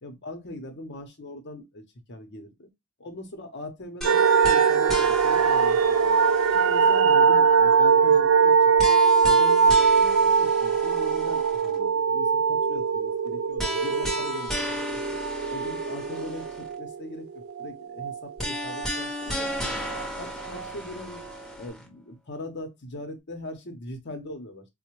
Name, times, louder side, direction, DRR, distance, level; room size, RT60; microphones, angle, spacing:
voice 1, 0.0-2.7 3.0-6.1 6.5-9.0 9.2-15.0 15.5-17.3 17.6-19.8 20.2-21.2 21.6-24.6, left 1 dB, 50° left, 0.8 m, -40 dB
sound 1, 4.0-7.1 8.8-11.8 13.6-16.7 18.4-21.8, equal, ahead, 0.8 m, -34 dB
sound 2, 4.0-18.9 19.2-20.6 21.2-21.3, right 6 dB, 65° right, 0.4 m, -22 dB
4.0 x 2.1 x 3.0 m
head